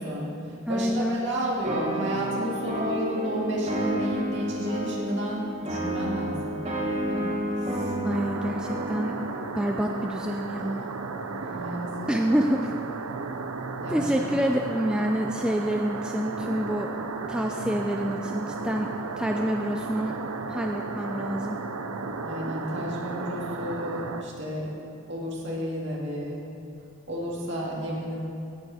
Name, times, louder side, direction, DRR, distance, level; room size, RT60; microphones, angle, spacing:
voice 1, 0.0-6.5 7.1-7.3 7.7-7.8 11.5-12.1 13.8-14.2 22.2-24.7 25.1-26.4 27.1-28.2, equal, 55° right, -4 dB, 2.3 m, -31 dB
voice 2, 0.7-1.2 8.0-9.1 9.6-10.9 11.5-11.6 12.1-12.7 13.9-16.9 17.3-18.9 19.2-20.2 20.5-21.6, equal, 5° right, 2 dB, 0.3 m, -27 dB
sound 1, 1.6-9.4, right 1 dB, 30° right, 1.4 m, -31 dB
sound 2, 8.1-24.2, right 4 dB, 75° right, 0.6 m, -34 dB
16.5 x 6.7 x 4.9 m, 2.8 s
head